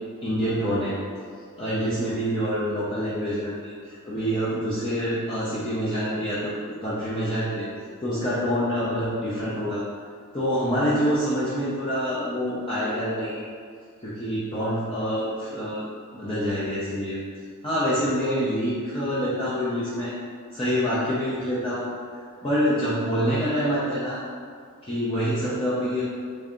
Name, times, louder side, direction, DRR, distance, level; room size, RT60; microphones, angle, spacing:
voice 1, 0.2-1.0 1.6-7.7 8.0-9.8 10.3-13.5 14.0-15.8 16.1-17.2 17.6-20.1 20.5-21.9 22.4-24.2 24.8-26.0, equal, 25° left, -11 dB, 0.6 m, -26 dB
3.3 x 2.7 x 3.6 m, 2.1 s
head